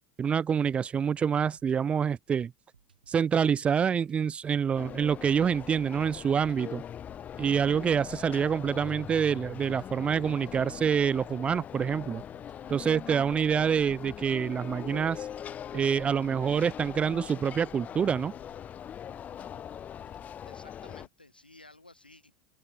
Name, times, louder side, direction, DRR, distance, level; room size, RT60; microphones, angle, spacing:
voice 1, 0.2-2.5 3.1-6.8 7.4-12.2 12.7-15.3 15.7-18.3, right 7 dB, 25° right, 0.5 m, -27 dB
sound 1, 1.4-20.3, right 7 dB, 80° right, 6.6 m, -66 dB
sound 2, 4.8-21.1, left 9 dB, 30° left, 1.9 m, -42 dB
voice 2, 20.4-22.4, left 2 dB, 90° left, 5.1 m, -54 dB
open air
figure-of-eight pair, 80°, 5 cm